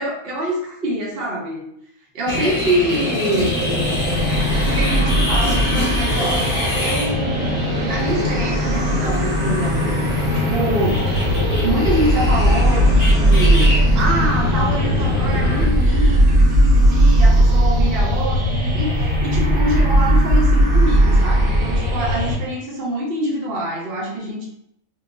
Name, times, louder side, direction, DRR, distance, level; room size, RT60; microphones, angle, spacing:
voice 1, 0.0-1.7 2.1-3.6 4.6-6.5 6.8-7.4 7.8-10.0 10.3-11.1 11.6-24.5, right 1 dB, 50° right, -3 dB, 0.9 m, -25 dB
sound 1, 2.3-15.7, left 1 dB, 30° left, 1.2 m, -24 dB
sound 2, 3.4-22.4, equal, 75° right, 1.2 m, -18 dB
2.9 x 2.0 x 2.4 m, 0.74 s
omnidirectional pair, 1.4 m